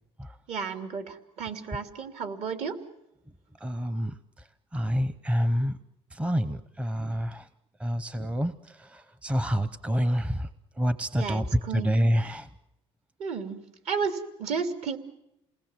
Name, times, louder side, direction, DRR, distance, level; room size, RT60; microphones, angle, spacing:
voice 1, 0.5-2.8 11.2-11.9 13.2-13.6 13.9-15.0, right 5 dB, 60° right, 7 dB, 3.1 m, -32 dB
voice 2, 3.6-4.1 4.7-5.8 6.1-7.5 7.8-8.5 8.8-10.5 10.8-11.5 11.7-12.5, equal, 10° right, 13 dB, 0.8 m, -27 dB
28.5 x 20.0 x 7.4 m, 0.88 s
cardioid pair, 135°, 12 cm